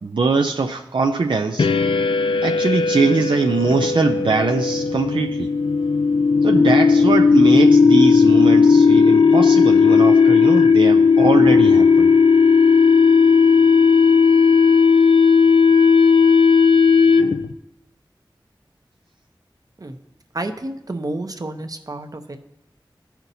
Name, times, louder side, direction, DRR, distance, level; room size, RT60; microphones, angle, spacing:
voice 1, 0.0-1.7 2.4-5.5 6.4-12.1, right 4 dB, 75° right, 4 dB, 0.5 m, -21 dB
sound 1, 1.6-17.5, left 5 dB, 85° left, 0.3 m, -15 dB
voice 2, 20.3-22.4, right 2 dB, 45° right, 6 dB, 0.8 m, -30 dB
15.5 x 5.8 x 2.7 m, 0.87 s
wide cardioid pair, 45°, 9 cm